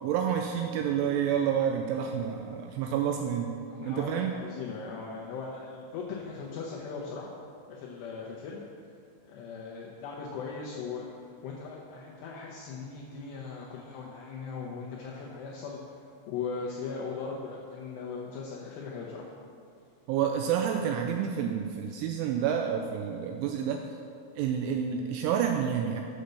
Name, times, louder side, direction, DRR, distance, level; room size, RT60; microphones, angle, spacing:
voice 1, 0.0-3.6 3.8-4.3 20.1-23.8 24.4-26.0, right 8 dB, 85° right, 4 dB, 2.7 m, -29 dB
voice 2, 3.7-7.3 7.7-8.6 9.2-11.1 11.4-15.8 16.3-19.3, left 5 dB, 85° left, -3 dB, 2.4 m, -39 dB
7.8 x 6.5 x 6.7 m, 2.3 s
omnidirectional pair, 5.9 m